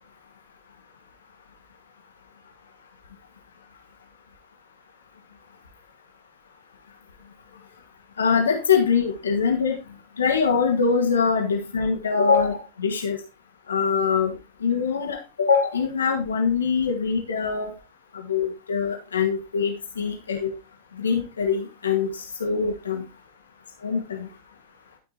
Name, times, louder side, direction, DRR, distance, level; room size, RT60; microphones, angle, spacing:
voice 1, 8.2-9.8 10.2-13.2 13.7-14.3 14.6-17.7 18.3-20.5 21.0-23.0 23.8-24.3, left 5 dB, 70° left, 2 dB, 2.1 m, -23 dB
12.5 x 5.8 x 4.3 m, 0.29 s
figure-of-eight pair, 90°, 0 cm